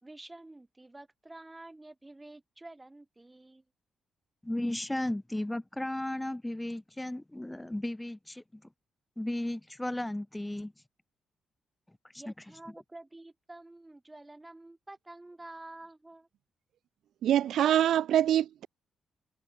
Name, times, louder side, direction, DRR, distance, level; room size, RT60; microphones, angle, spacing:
voice 1, 0.0-3.6 12.2-16.3, right 2 dB, 20° right, 3.9 m, -49 dB
voice 2, 4.4-8.6 9.2-10.7 12.1-12.2, left 1 dB, 10° left, 2.1 m, -35 dB
voice 3, 17.2-18.7, right 11 dB, 70° right, 0.4 m, -24 dB
hypercardioid pair, 45°, 0 cm